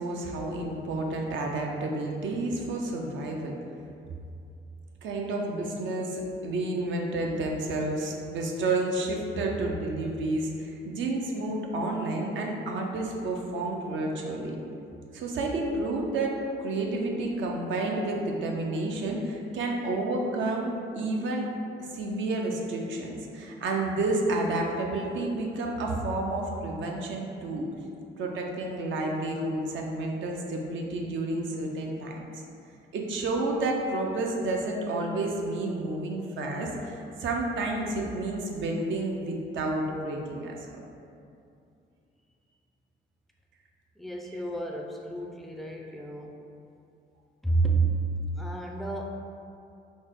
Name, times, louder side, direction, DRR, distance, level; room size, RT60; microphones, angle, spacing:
voice 1, 0.0-3.6 5.0-14.6 15.1-21.5 21.9-27.7 28.2-32.2 32.9-40.8, right 2 dB, 70° right, 0 dB, 0.6 m, -30 dB
voice 2, 44.0-46.4 47.4-48.0 48.4-49.2, right 3 dB, ahead, 0 dB, 0.4 m, -30 dB
4.0 x 2.0 x 3.5 m, 2.6 s
cardioid pair, 90°, 20 cm